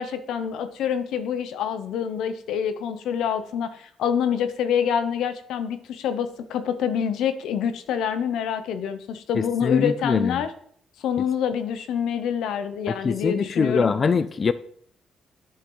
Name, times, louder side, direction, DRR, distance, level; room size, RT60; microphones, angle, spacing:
voice 1, 0.0-10.5 11.0-14.0, left 8 dB, 85° left, 11 dB, 0.7 m, -26 dB
voice 2, 9.4-10.4 13.0-14.5, left 5 dB, 40° left, 14 dB, 0.4 m, -23 dB
8.6 x 6.5 x 3.8 m, 0.63 s
cardioid pair, 90°, 0 cm